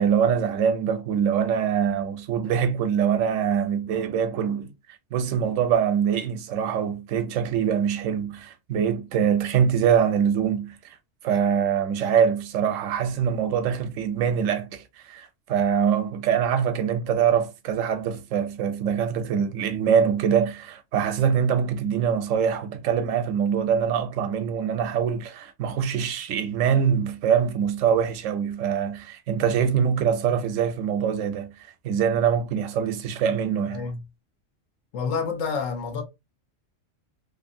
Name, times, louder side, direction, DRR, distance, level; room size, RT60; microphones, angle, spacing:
voice 1, 0.0-11.0 11.2-33.9, right 7 dB, 80° right, 0.9 m, -24 dB
voice 2, 33.6-34.0 34.9-36.0, left 5 dB, 85° left, 1.1 m, -28 dB
2.8 x 2.4 x 2.6 m
omnidirectional pair, 1.3 m